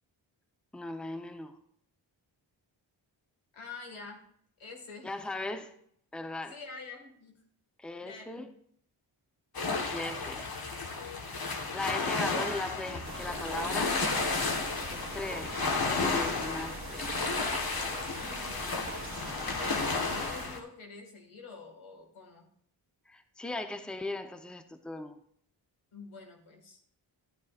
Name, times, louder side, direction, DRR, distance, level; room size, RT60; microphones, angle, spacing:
voice 1, 0.7-1.6 5.0-5.8 6.1-6.6 7.8-8.5 9.8-10.5 11.7-14.0 14.9-17.1 23.1-25.2, left 2 dB, ahead, 7 dB, 0.8 m, -38 dB
voice 2, 3.5-4.2 4.6-5.1 6.5-7.4 8.0-8.4 18.0-18.6 19.4-22.5 25.9-26.8, left 4 dB, 85° left, 2 dB, 2.0 m, -47 dB
sound 1, 9.5-20.6, left 3 dB, 50° left, 1.4 m, -32 dB
sound 2, 13.0-20.5, right 3 dB, 25° right, 1.9 m, -43 dB
12.5 x 9.3 x 2.5 m, 0.67 s
cardioid pair, 45°, 48 cm